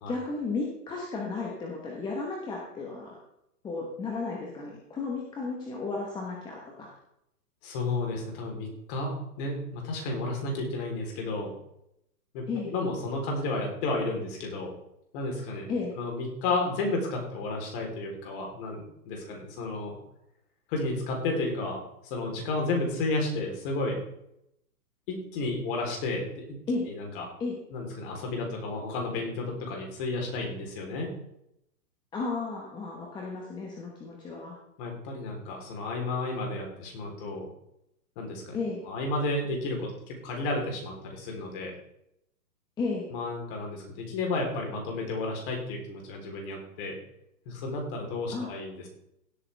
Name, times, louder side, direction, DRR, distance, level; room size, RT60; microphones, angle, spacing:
voice 1, 0.1-3.2 3.6-6.9 12.5-12.7 15.7-15.9 26.7-26.9 27.4-27.6 32.1-34.5 38.5-38.8 42.8-43.1 48.3-48.5, left 3 dB, 10° left, -1 dB, 1.1 m, -33 dB
voice 2, 7.6-11.5 12.3-14.7 15.1-20.0 20.7-21.8 22.0-24.0 25.1-26.6 26.9-27.3 27.7-31.1 34.8-37.5 38.2-38.6 38.9-41.7 43.1-47.0 47.5-48.9, left 2 dB, 35° left, 1 dB, 3.7 m, -32 dB
16.5 x 8.4 x 3.4 m, 0.79 s
hypercardioid pair, 155°, 48 cm